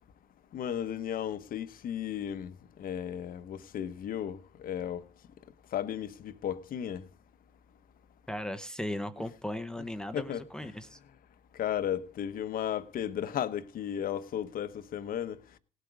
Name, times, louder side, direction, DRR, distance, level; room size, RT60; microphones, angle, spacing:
voice 1, 0.5-2.5 2.8-5.0 5.7-7.0 10.1-10.4 11.6-15.3, left 9 dB, 55° left, 1.1 m, -34 dB
voice 2, 8.3-11.0, left 1 dB, 5° left, 0.9 m, -37 dB
18.0 x 8.2 x 4.8 m
cardioid pair, 110°, 17 cm